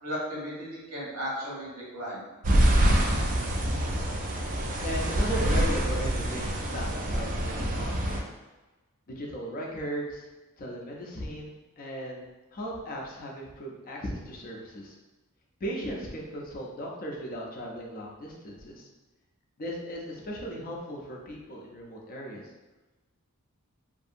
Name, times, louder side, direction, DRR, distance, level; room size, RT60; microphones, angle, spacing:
voice 1, 0.0-2.3, equal, 85° right, -6 dB, 1.1 m, -35 dB
sound 1, 2.4-8.2, right 1 dB, 35° right, 0.3 m, -26 dB
voice 2, 4.8-8.3 9.1-10.3 10.6-12.2 12.5-15.0 15.6-18.9 19.6-22.4, equal, 40° left, -2 dB, 0.5 m, -37 dB
2.6 x 2.6 x 2.5 m, 1.1 s
head